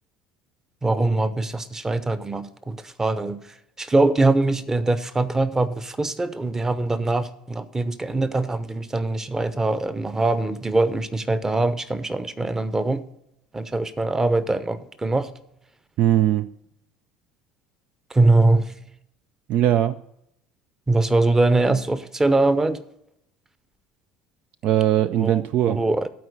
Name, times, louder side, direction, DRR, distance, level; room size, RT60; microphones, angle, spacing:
voice 1, 0.8-3.4 3.8-13.0 13.5-15.3 18.1-18.7 20.9-22.8 25.1-26.1, right 2 dB, 15° right, 0.8 m, -22 dB
voice 2, 16.0-16.5 19.5-20.0 24.6-25.8, right 12 dB, 55° right, 0.4 m, -20 dB
12.0 x 4.5 x 8.0 m
hypercardioid pair, 70°, 3 cm